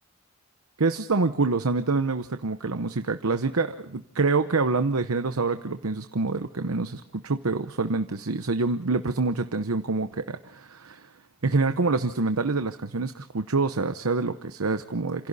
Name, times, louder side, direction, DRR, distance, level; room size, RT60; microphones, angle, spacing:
voice 1, 0.8-11.1 11.4-15.3, right 3 dB, 80° right, 8 dB, 0.9 m, -26 dB
29.0 x 27.5 x 4.2 m, 0.64 s
head